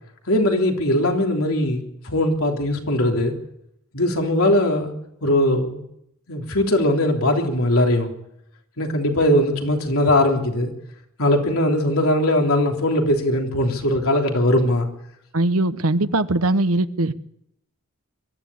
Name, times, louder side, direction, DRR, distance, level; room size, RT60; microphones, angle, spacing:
voice 1, 0.3-3.3 3.9-4.9 5.2-5.8 6.3-8.1 8.8-10.7 11.2-14.9, left 1 dB, 80° left, 2 dB, 3.4 m, -20 dB
voice 2, 15.3-17.1, right 2 dB, 80° right, 12 dB, 1.1 m, -20 dB
23.5 x 14.0 x 8.6 m, 0.76 s
head